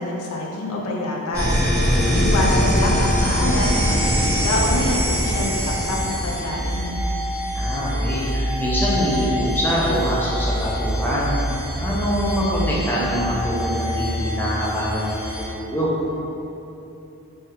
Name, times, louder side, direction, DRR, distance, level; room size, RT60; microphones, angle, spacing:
voice 1, 0.0-1.6 2.2-7.0, left 1 dB, 70° left, -1 dB, 0.5 m, -26 dB
sound 1, 1.3-6.4, equal, 15° right, 0.9 m, -21 dB
sound 2, 1.7-15.4, equal, 40° right, 0.8 m, -27 dB
voice 2, 1.9-2.3 7.5-11.4 11.8-15.9, equal, 10° left, -6 dB, 0.5 m, -24 dB
3.5 x 2.7 x 3.4 m, 2.9 s
head